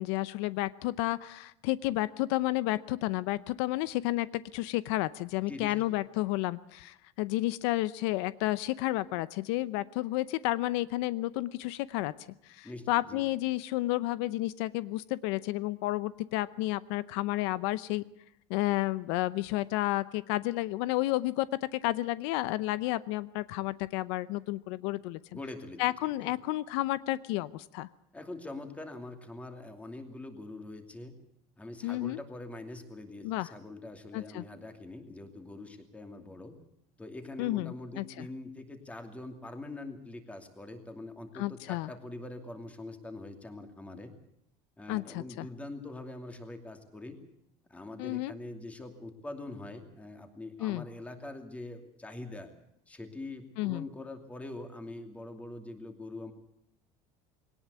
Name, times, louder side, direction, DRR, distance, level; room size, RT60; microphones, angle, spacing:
voice 1, 0.0-12.1 12.4-18.0 18.5-25.2 25.8-27.9 31.8-32.2 33.2-33.5 34.1-34.4 37.4-38.3 41.3-41.9 44.9-45.5 48.0-48.3 50.6-50.8 53.6-53.8, left 17 dB, 80° left, 17 dB, 0.7 m, -31 dB
voice 2, 5.5-5.9 12.6-13.2 25.3-25.8 26.2-26.4 28.1-31.1 31.6-36.6 37.0-44.1 44.8-47.2 47.7-52.5 52.9-56.3, left 2 dB, 10° left, 6 dB, 2.6 m, -43 dB
21.0 x 18.5 x 8.2 m, 0.76 s
cardioid pair, 155°, 14 cm